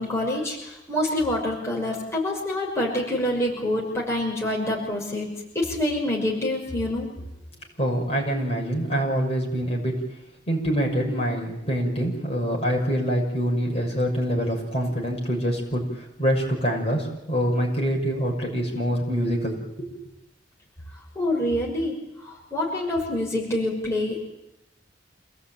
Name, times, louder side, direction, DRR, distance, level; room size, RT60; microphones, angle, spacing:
voice 1, 0.0-7.1 21.1-22.0 22.2-24.3, left 1 dB, 15° left, -3 dB, 6.1 m, -26 dB
voice 2, 7.8-9.9 10.5-19.9, equal, 35° left, 0 dB, 6.3 m, -25 dB
28.0 x 18.5 x 9.1 m, 0.89 s
head